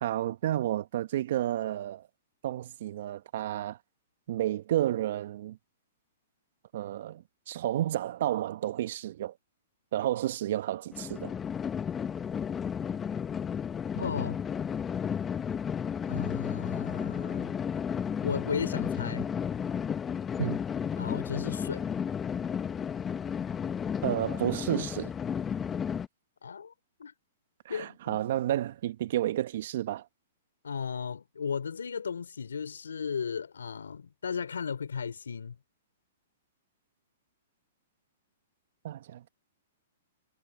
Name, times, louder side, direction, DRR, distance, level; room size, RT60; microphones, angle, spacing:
voice 1, 0.0-2.1 2.4-3.8 4.3-5.6 6.7-9.3 9.9-11.4 20.4-20.6 24.0-25.1 27.6-30.0 38.8-39.3, right 12 dB, 60° right, 1.1 m, -31 dB
sound 1, 10.9-26.1, left 7 dB, 20° left, 0.9 m, -33 dB
voice 2, 13.9-14.4 16.1-17.5 18.2-19.3 21.0-21.9 26.4-26.7 27.0-27.1 27.7-28.2 30.6-35.6, left 6 dB, 85° left, 3.7 m, -35 dB
hypercardioid pair, 125°, 0 cm